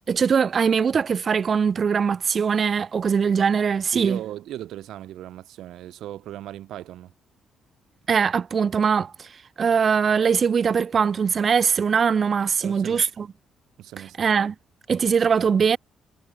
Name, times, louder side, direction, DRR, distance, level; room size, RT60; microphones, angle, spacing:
voice 1, 0.0-4.2 8.1-9.3 9.6-13.3 14.0-14.5 14.9-15.8, right 6 dB, 45° right, 0.4 m, -21 dB
voice 2, 3.9-7.1 12.6-13.1 13.8-14.2, right 13 dB, 80° right, 2.1 m, -37 dB
cardioid pair, 90°, 0 cm